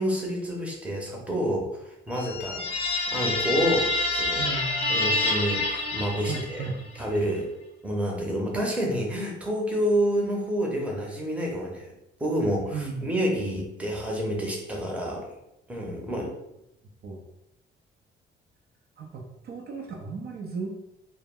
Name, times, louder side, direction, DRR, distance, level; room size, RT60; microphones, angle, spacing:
voice 1, 0.0-4.4 4.9-6.6 7.0-7.5 7.8-11.9 12.2-15.2 15.7-16.3, equal, 5° right, -1 dB, 0.7 m, -28 dB
sound 1, 2.1-6.8, left 2 dB, 30° left, 0.6 m, -27 dB
voice 2, 4.4-5.3 6.3-6.8 12.7-13.1 17.0-17.2 19.0-20.7, right 4 dB, 55° right, 0 dB, 0.5 m, -35 dB
2.1 x 2.0 x 3.5 m, 0.86 s
cardioid pair, 90°, 20 cm